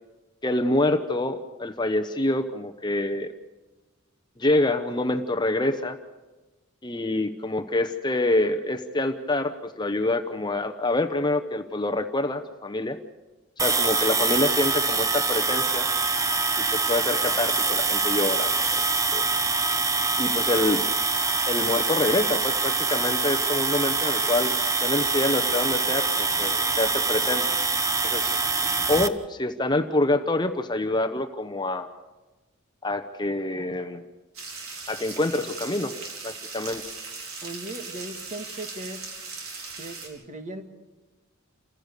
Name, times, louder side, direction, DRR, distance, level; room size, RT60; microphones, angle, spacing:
voice 1, 0.4-3.3 4.4-6.0 6.8-13.0 13.6-15.9 16.6-18.9 19.1-19.3 20.2-20.8 21.5-24.5 24.8-27.4 28.0-28.4 28.9-31.9 32.8-34.0 34.9-35.9 36.2-36.8, left 2 dB, 20° left, 8 dB, 0.8 m, -26 dB
sound 1, 13.6-29.1, right 4 dB, 15° right, 0.8 m, -24 dB
sound 2, 34.3-40.1, right 4 dB, 85° right, 4.9 m, -38 dB
voice 2, 37.4-39.1 39.8-40.7, right 2 dB, 35° right, 6 dB, 1.9 m, -38 dB
28.5 x 15.5 x 6.7 m, 1.2 s
head